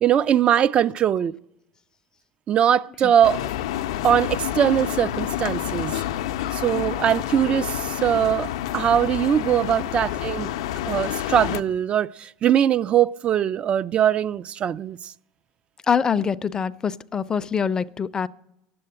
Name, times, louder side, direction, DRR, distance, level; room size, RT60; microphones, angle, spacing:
voice 1, 0.0-1.4 2.5-3.5 4.0-6.0 6.5-10.5 10.9-15.1, right 9 dB, 40° right, 0.3 m, -21 dB
sound 1, 3.2-11.6, left 12 dB, 80° left, 0.5 m, -28 dB
voice 2, 15.9-18.3, left 6 dB, 25° left, 0.4 m, -24 dB
10.5 x 7.8 x 8.6 m
hypercardioid pair, 90°, 3 cm